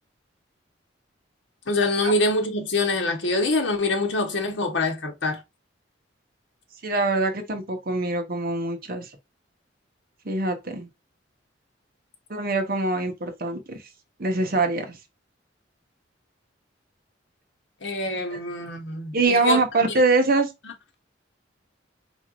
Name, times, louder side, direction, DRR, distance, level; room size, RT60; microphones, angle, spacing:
voice 1, 1.7-5.4 17.8-19.6 20.6-20.7, left 2 dB, 70° left, 1.0 m, -25 dB
voice 2, 6.8-9.1 10.2-10.9 12.3-13.9 14.2-15.0 18.3-18.4 19.1-20.5, right 3 dB, 50° right, 1.1 m, -24 dB
4.3 x 3.4 x 2.4 m
head